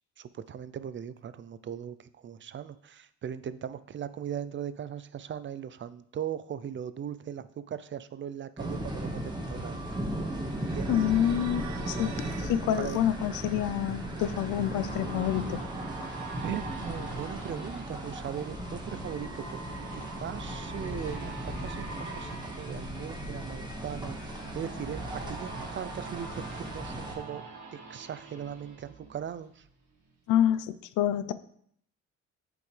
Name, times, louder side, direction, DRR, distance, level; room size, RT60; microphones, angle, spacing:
voice 1, 0.2-9.8 10.7-11.0 12.8-13.0 16.4-19.6 19.9-27.4 27.7-29.6, right 9 dB, 40° right, 14 dB, 0.4 m, -39 dB
sound 1, 8.6-27.1, right 1 dB, 15° right, 1.5 m, -37 dB
sound 2, 10.4-12.6, right 8 dB, 65° right, 0.8 m, -44 dB
voice 2, 10.9-15.6 30.3-31.3, left 11 dB, 85° left, 15 dB, 0.5 m, -27 dB
sound 3, 12.5-29.7 30.1-30.2, right 3 dB, 85° right, 1.8 m, -44 dB
8.2 x 5.1 x 3.2 m, 0.66 s
cardioid pair, 90°, 30 cm